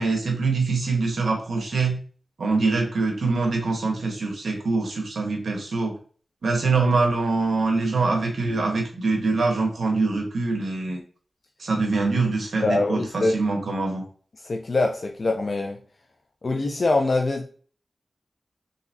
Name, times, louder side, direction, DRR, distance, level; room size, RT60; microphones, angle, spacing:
voice 1, 0.0-2.0 2.4-6.0 6.4-11.0 11.6-14.0, right 3 dB, 85° right, 1 dB, 1.2 m, -24 dB
voice 2, 12.6-13.3 14.4-15.8 16.4-17.5, left 2 dB, 55° left, 3 dB, 0.5 m, -23 dB
3.9 x 3.5 x 2.7 m, 0.41 s
wide cardioid pair, 95°, 0 cm